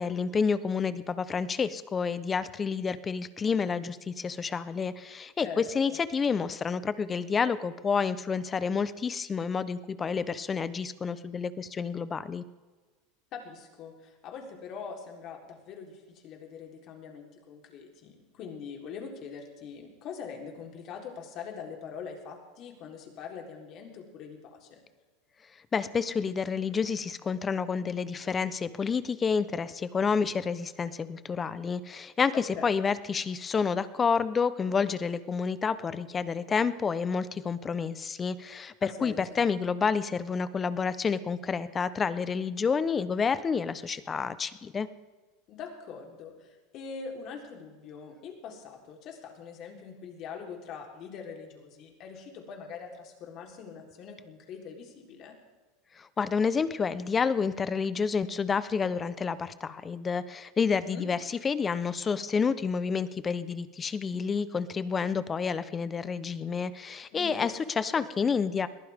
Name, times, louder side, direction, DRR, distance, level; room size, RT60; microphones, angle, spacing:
voice 1, 0.0-12.4 25.7-44.9 56.0-68.7, left 5 dB, 25° left, 15 dB, 0.9 m, -29 dB
voice 2, 5.4-6.0 13.3-24.8 32.3-32.7 38.8-39.5 45.5-55.4 60.7-61.0 67.1-67.6 67.9-68.1, left 6 dB, 50° left, 2 dB, 3.9 m, -43 dB
21.5 x 15.0 x 3.7 m, 1.3 s
supercardioid pair, 110°, 0 cm